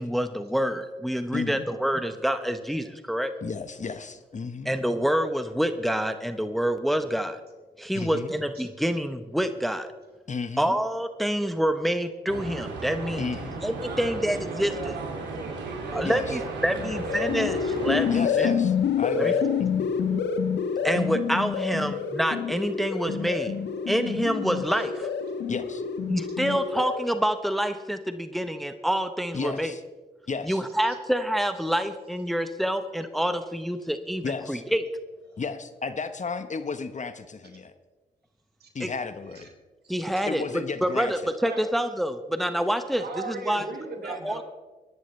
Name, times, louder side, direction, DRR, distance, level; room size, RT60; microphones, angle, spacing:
voice 1, 0.0-3.3 4.6-7.4 7.8-9.9 10.6-13.3 13.6-14.9 15.9-18.5 19.2-19.3 20.8-23.5 23.9-25.1 26.1-29.7 30.4-34.8 38.8-38.9 39.9-40.4 40.8-43.6 44.0-44.4, equal, ahead, 9 dB, 1.0 m, -27 dB
voice 2, 1.3-1.7 3.4-4.7 7.9-8.3 10.3-10.8 13.2-13.6 16.0-16.4 18.1-19.9 25.5-25.8 29.3-29.8 30.3-30.6 34.2-34.6 35.4-37.7 38.7-39.5 40.3-41.1, left 4 dB, 45° left, 10 dB, 1.1 m, -33 dB
sound 1, 12.3-18.2, right 3 dB, 80° right, 2.4 m, -36 dB
voice 3, 13.7-17.3 35.3-35.4 38.6-38.9 39.3-39.5 39.8-40.3 41.4-41.7 42.4-44.4, right 3 dB, 65° right, 3 dB, 2.8 m, -39 dB
sound 2, 16.7-27.3, left 6 dB, 75° left, 1.2 m, -27 dB
20.5 x 11.0 x 3.3 m, 1.2 s
supercardioid pair, 50°, 18 cm